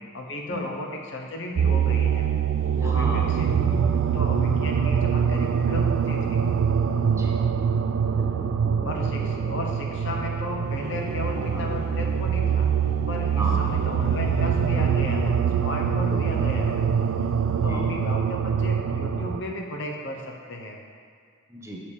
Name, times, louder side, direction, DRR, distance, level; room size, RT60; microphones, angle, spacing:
voice 1, 0.1-2.3 2.8-3.8 4.1-6.5 8.8-16.8 17.6-20.8, left 2 dB, 60° left, 1 dB, 0.8 m, -34 dB
sound 1, 1.6-19.4, right 7 dB, 70° right, 0.3 m, -24 dB
voice 2, 2.8-3.5 7.2-7.3 8.1-9.5 11.3-11.6 13.4-13.8 16.1-16.3 17.6-17.8 21.5-21.8, right 1 dB, 15° right, -2 dB, 0.8 m, -35 dB
6.8 x 5.6 x 4.9 m, 2.1 s
head